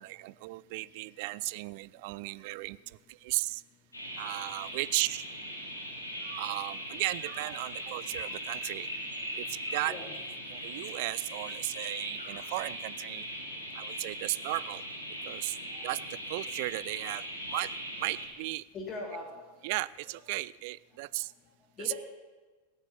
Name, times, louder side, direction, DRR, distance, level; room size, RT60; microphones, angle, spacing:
voice 1, 0.0-3.6 4.2-5.3 6.2-8.9 9.3-9.9 10.5-13.3 13.7-14.8 15.2-15.6 15.8-17.7 18.0-18.6 19.6-21.3 21.8-21.9, right 21 dB, 50° right, 21 dB, 0.4 m, -35 dB
sound 1, 3.9-18.3, equal, 80° left, 3.3 m, -40 dB
voice 2, 9.8-10.2 15.7-16.0 18.7-19.4 21.8-21.9, left 3 dB, 25° left, 2 dB, 2.1 m, -40 dB
18.5 x 8.3 x 6.8 m, 1.3 s
figure-of-eight pair, 90°, 0 cm